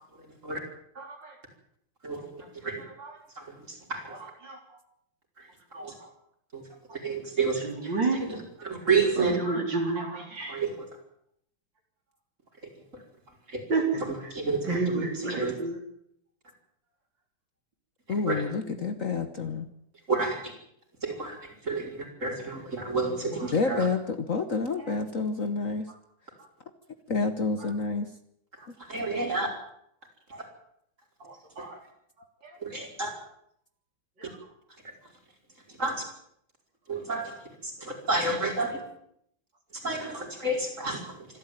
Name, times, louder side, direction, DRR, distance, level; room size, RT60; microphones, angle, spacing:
voice 1, 0.2-0.6 2.0-2.8 3.4-4.1 5.4-5.5 5.8-5.9 6.5-6.6 6.9-9.4 10.5-10.9 12.9-13.0 13.5-13.6 14.0-15.6 18.1-18.5 20.1-20.5 21.0-23.9 28.8-29.5 31.6-31.7 32.6-33.1 34.2-34.3 35.7-36.0 36.9-37.3 37.6-38.8 39.7-41.3, right 3 dB, 35° right, 1 dB, 5.5 m, -30 dB
voice 2, 1.0-1.3 4.4-4.6 5.7-5.9 7.6-8.2 9.5-10.6 13.7-13.8 14.7-15.8 18.8-18.9 30.3-30.4 31.2-31.8 34.2-34.3, right 3 dB, 60° right, 2 dB, 4.8 m, -30 dB
voice 3, 18.1-19.6 23.5-25.8 27.1-28.1, left 4 dB, 45° left, 8 dB, 1.4 m, -28 dB
26.0 x 13.0 x 9.1 m, 0.73 s
omnidirectional pair, 2.2 m